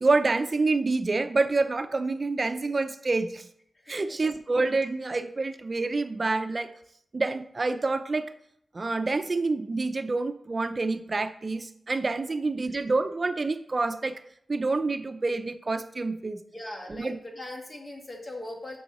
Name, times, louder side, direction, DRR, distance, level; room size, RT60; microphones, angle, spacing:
voice 1, 0.0-3.4 3.9-6.7 7.1-8.3 8.7-14.2 14.5-16.4 16.9-17.2, right 3 dB, 40° right, 10 dB, 0.6 m, -27 dB
voice 2, 3.7-4.1 12.7-12.8 16.5-18.8, left 1 dB, 35° left, 0 dB, 2.1 m, -40 dB
8.2 x 6.2 x 4.3 m, 0.71 s
wide cardioid pair, 80°, 0 cm